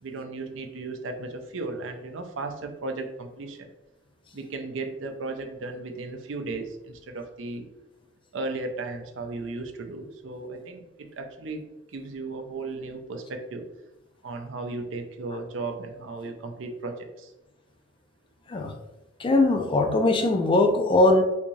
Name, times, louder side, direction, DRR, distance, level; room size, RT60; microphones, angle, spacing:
voice 1, 0.0-3.7 4.3-7.7 8.3-11.6 11.9-13.7 14.2-17.3, right 3 dB, 70° right, 6 dB, 0.5 m, -35 dB
voice 2, 19.2-21.2, left 2 dB, 25° left, 5 dB, 0.3 m, -20 dB
3.5 x 2.6 x 3.1 m, 0.97 s
head